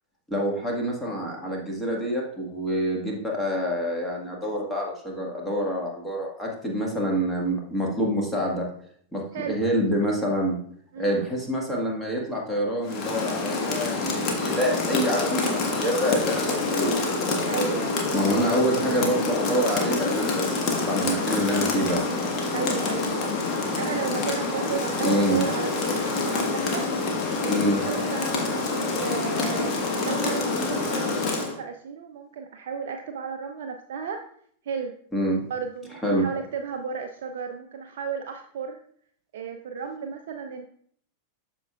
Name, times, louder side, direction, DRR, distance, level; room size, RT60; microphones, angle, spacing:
voice 1, 0.3-8.7 9.1-10.6 11.0-17.0 18.1-22.0 25.0-25.5 27.5-27.8 35.1-35.4 36.0-36.3, equal, 10° left, -2 dB, 1.7 m, -26 dB
voice 2, 10.9-11.3 17.5-17.9 22.5-26.9 27.4-29.7 30.0-34.2 34.6-34.9 35.5-38.8 39.3-40.7, right 6 dB, 55° right, 5 dB, 0.5 m, -34 dB
Rain, 12.8-31.6, left 3 dB, 35° left, 1.4 m, -27 dB
12.5 x 4.5 x 2.4 m, 0.62 s
figure-of-eight pair, 90°, 0 cm